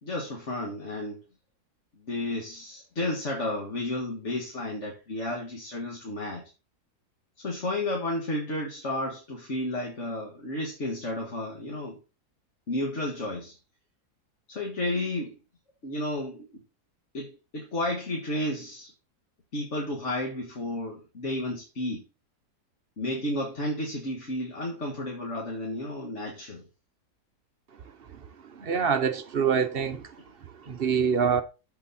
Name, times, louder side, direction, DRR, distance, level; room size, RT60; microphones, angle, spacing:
voice 1, 0.0-1.2 2.0-6.5 7.4-12.0 12.7-13.6 14.5-15.4 15.8-16.5 17.1-18.9 19.5-22.0 23.0-26.7, left 1 dB, 50° left, 2.1 m, -32 dB
voice 2, 28.6-30.0 30.7-31.4, right 6 dB, 45° right, 0.9 m, -25 dB
13.5 x 4.8 x 4.2 m
omnidirectional pair, 1.7 m